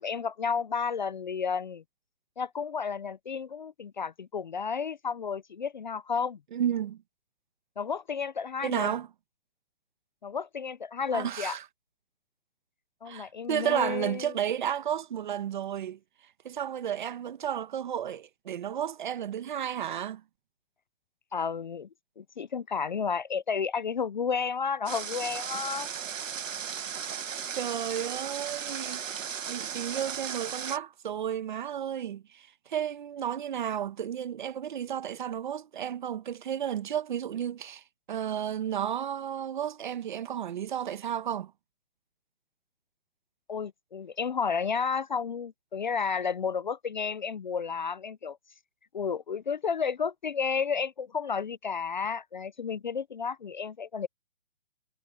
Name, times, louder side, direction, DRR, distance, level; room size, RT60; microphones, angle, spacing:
voice 1, 0.0-1.8 2.4-6.4 7.8-8.9 10.2-11.6 13.0-14.4 21.3-21.9 22.2-25.9 43.5-48.4 48.9-54.1, left 6 dB, 40° left, 0.5 m, -32 dB
voice 2, 6.5-7.0 8.6-9.1 11.1-11.6 13.0-16.0 16.4-20.2 27.6-29.0 29.5-41.5, right 9 dB, 40° right, 1.1 m, -32 dB
Water, 24.9-30.8, right 8 dB, 85° right, 1.4 m, -36 dB
hypercardioid pair, 170°, 38 cm